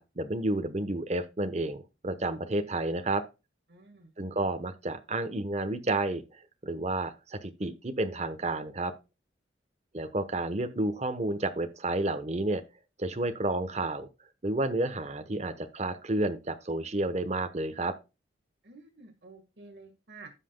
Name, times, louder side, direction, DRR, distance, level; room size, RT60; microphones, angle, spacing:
voice 1, 0.0-3.2 4.2-6.2 6.6-8.9 9.9-12.6 13.0-14.1 14.4-17.9, right 2 dB, 35° right, 1.0 m, -31 dB
voice 2, 3.7-4.1 18.6-20.3, right 3 dB, 60° right, 1.6 m, -51 dB
15.5 x 5.8 x 2.2 m
head